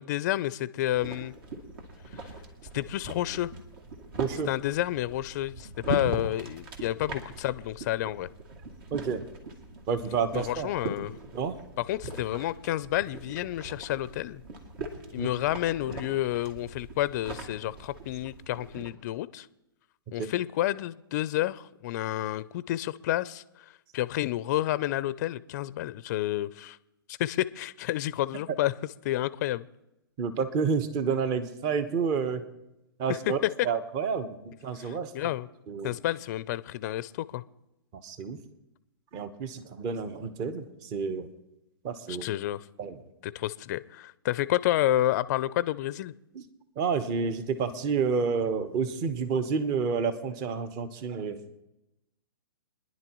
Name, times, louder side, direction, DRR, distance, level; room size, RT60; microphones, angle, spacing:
voice 1, 0.0-1.3 2.1-2.3 2.7-3.5 4.5-8.3 10.3-11.2 11.8-14.4 15.1-19.5 20.1-26.8 27.1-28.7 29.0-29.7 33.1-33.2 34.8-35.5 35.8-37.4 42.1-42.7 43.2-46.1, left 14 dB, 45° left, 16 dB, 0.5 m, -30 dB
sound 1, 0.9-18.9, right 2 dB, 60° right, 2.6 m, -41 dB
voice 2, 4.2-4.5 8.9-9.2 9.9-10.7 11.3-11.5 15.2-15.3 20.2-20.3 30.2-32.4 33.0-35.1 35.7-36.0 38.0-38.4 39.1-41.3 41.8-42.2 42.8-43.0 46.3-46.4 46.8-51.4, right 5 dB, 30° right, 10 dB, 1.1 m, -29 dB
26.5 x 10.5 x 3.1 m, 0.92 s
hypercardioid pair, 135°, 13 cm